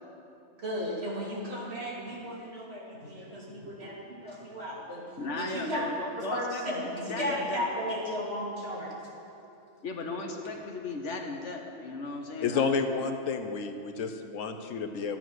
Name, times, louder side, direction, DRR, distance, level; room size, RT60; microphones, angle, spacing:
voice 1, 0.5-5.0 5.3-5.8 6.1-8.9, equal, 55° right, -5 dB, 2.8 m, -35 dB
voice 2, 3.6-3.9 4.3-4.5 5.2-7.7 9.8-12.6, left 3 dB, 65° left, 3 dB, 1.5 m, -37 dB
voice 3, 12.4-15.2, left 5 dB, 85° left, 7 dB, 1.2 m, -30 dB
13.0 x 8.8 x 6.3 m, 2.7 s
omnidirectional pair, 1.3 m